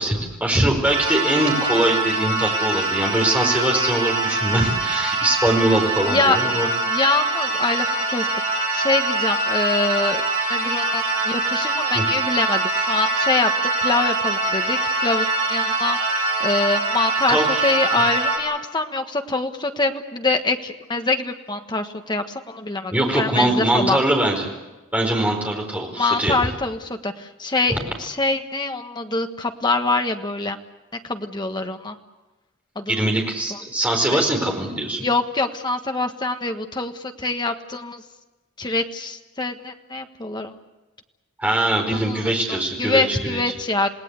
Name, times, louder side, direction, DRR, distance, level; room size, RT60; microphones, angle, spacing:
voice 1, 0.0-6.7 11.9-12.0 17.3-17.7 22.9-24.5 24.9-26.4 27.7-27.8 32.9-35.0 41.4-43.4, right 1 dB, 5° right, 1 dB, 4.6 m, -22 dB
sound 1, 0.8-18.4, right 2 dB, 25° right, 6.0 m, -23 dB
voice 2, 6.1-6.5 6.9-10.2 10.5-13.5 13.8-16.0 16.4-24.0 26.0-30.6 31.0-32.0 32.7-33.1 33.5-33.6 34.1-34.2 35.0-38.0 38.6-40.5 41.9-43.9, left 3 dB, 20° left, 6 dB, 1.4 m, -24 dB
28.0 x 18.5 x 8.2 m, 1.1 s
head